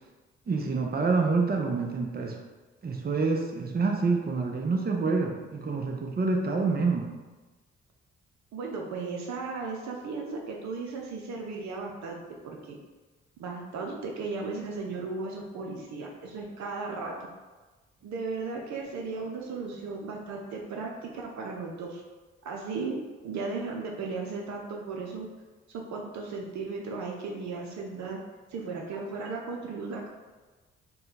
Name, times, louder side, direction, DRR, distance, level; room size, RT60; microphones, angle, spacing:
voice 1, 0.5-2.4 2.8-7.1, right 4 dB, 30° right, 2 dB, 0.7 m, -27 dB
voice 2, 8.5-12.8 13.4-17.2 18.0-22.0 22.4-23.0 23.2-25.3 25.7-28.2 28.5-30.1, right 4 dB, 65° right, 0 dB, 0.6 m, -36 dB
3.8 x 2.2 x 4.0 m, 1.2 s
hypercardioid pair, 45°, 30 cm